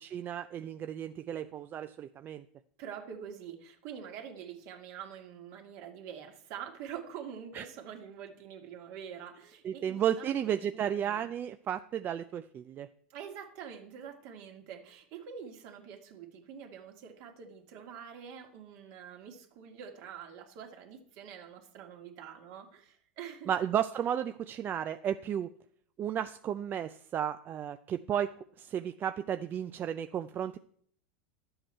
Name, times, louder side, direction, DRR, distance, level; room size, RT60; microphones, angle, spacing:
voice 1, 0.0-2.4 7.5-7.6 9.6-12.9 23.5-25.5 26.0-30.6, right 9 dB, 35° right, 10 dB, 0.4 m, -33 dB
voice 2, 2.8-11.2 13.1-23.5, right 8 dB, 55° right, 3 dB, 2.0 m, -46 dB
12.0 x 7.9 x 4.4 m, 0.63 s
hypercardioid pair, 105°, 6 cm